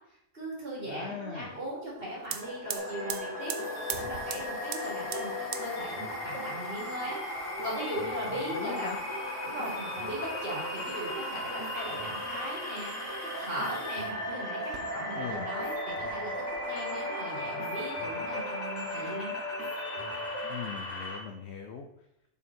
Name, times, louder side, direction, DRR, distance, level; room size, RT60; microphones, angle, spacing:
voice 1, 0.3-3.6 3.9-8.9 9.4-19.3, right 1 dB, 50° right, -6 dB, 3.4 m, -39 dB
voice 2, 0.9-1.5 8.3-9.0 15.1-15.5 20.5-21.9, left 6 dB, 65° left, 4 dB, 0.9 m, -39 dB
sound 1, 1.9-2.0 2.2-14.2 14.6-15.4 15.6-16.6, right 8 dB, 85° right, 1.1 m, -44 dB
sound 2, 2.4-21.2, left 1 dB, 35° left, 1.9 m, -37 dB
sound 3, 2.7-20.5, left 1 dB, 80° left, 2.2 m, -41 dB
7.3 x 6.0 x 4.4 m, 0.82 s
omnidirectional pair, 1.3 m